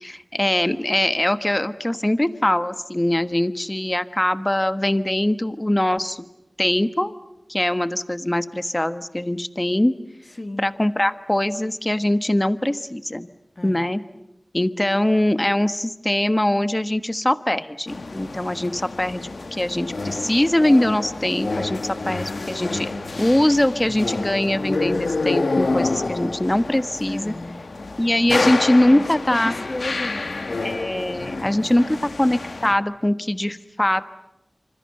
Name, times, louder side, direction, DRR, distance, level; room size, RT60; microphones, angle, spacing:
voice 1, 0.0-6.2 6.6-7.2 7.5-9.9 10.6-13.3 13.6-14.0 14.5-22.9 23.2-27.3 28.0-29.5 30.6-34.2, left 1 dB, 25° left, 12 dB, 1.3 m, -22 dB
voice 2, 13.5-13.9 27.1-27.6 28.9-30.6 31.4-32.0, left 1 dB, 45° left, 10 dB, 1.7 m, -35 dB
sound 1, 17.9-32.7, left 3 dB, 90° left, 1.3 m, -28 dB
26.5 x 26.0 x 7.8 m, 0.88 s
wide cardioid pair, 45°, 0 cm